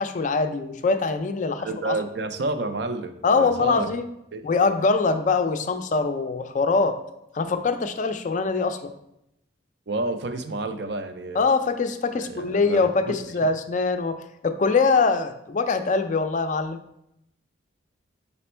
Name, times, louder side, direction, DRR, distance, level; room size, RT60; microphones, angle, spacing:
voice 1, 0.0-1.9 3.2-4.0 4.4-7.0 7.3-8.9 11.4-14.2 14.4-16.8, left 4 dB, 40° left, 8 dB, 0.4 m, -23 dB
voice 2, 1.6-3.9 4.3-4.4 9.9-11.4 12.1-12.8, right 2 dB, 60° right, 8 dB, 0.5 m, -30 dB
5.1 x 4.2 x 4.3 m, 0.82 s
head